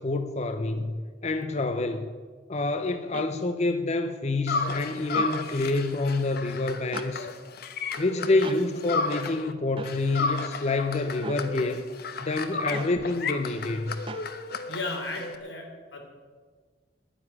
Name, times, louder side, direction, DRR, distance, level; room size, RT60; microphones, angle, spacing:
voice 1, 0.0-2.1 2.5-7.3 8.0-11.8 12.2-14.0, left 2 dB, 40° left, 7 dB, 0.7 m, -27 dB
sound 1, 3.1-3.3 5.1-5.3 6.9-7.1 8.4-8.6 9.8-10.0 11.2-11.4 12.7-13.0 14.1-14.3, right 3 dB, 30° right, 0.6 m, -38 dB
sound 2, 4.5-9.5 9.8-15.4, left 4 dB, 60° left, 1.0 m, -33 dB
voice 2, 14.7-16.0, left 2 dB, 90° left, 2 dB, 3.4 m, -35 dB
10.0 x 10.0 x 9.8 m, 1.5 s
head